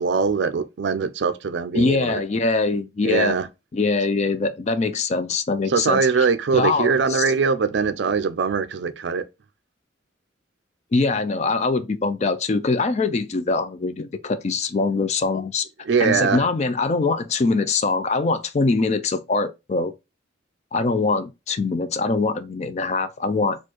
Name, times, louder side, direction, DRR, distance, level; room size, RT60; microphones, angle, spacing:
voice 1, 0.0-2.2 3.0-3.5 5.7-9.2 15.8-16.4, right 5 dB, 60° right, 0.4 m, -22 dB
voice 2, 1.7-3.4 3.7-7.3 10.9-15.7 16.0-19.9 20.7-23.6, left 3 dB, 35° left, 0.4 m, -23 dB
4.3 x 2.4 x 2.9 m
head